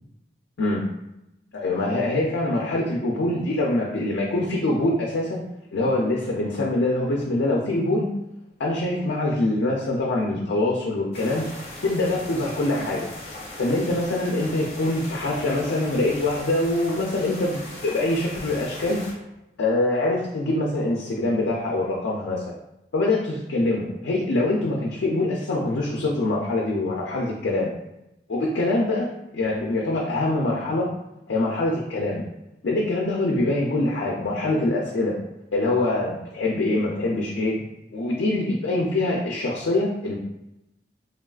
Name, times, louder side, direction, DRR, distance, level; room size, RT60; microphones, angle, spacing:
voice 1, 1.5-5.4 5.7-8.1 8.6-13.1 13.6-19.1 19.6-22.5 22.9-27.7 28.3-30.9 31.3-32.2 32.6-35.2 35.5-37.6 37.9-40.2, left 2 dB, 85° left, -2 dB, 0.4 m, -24 dB
sound 1, 11.1-19.1, left 1 dB, 35° left, 0.8 m, -39 dB
3.4 x 2.3 x 2.3 m, 0.89 s
head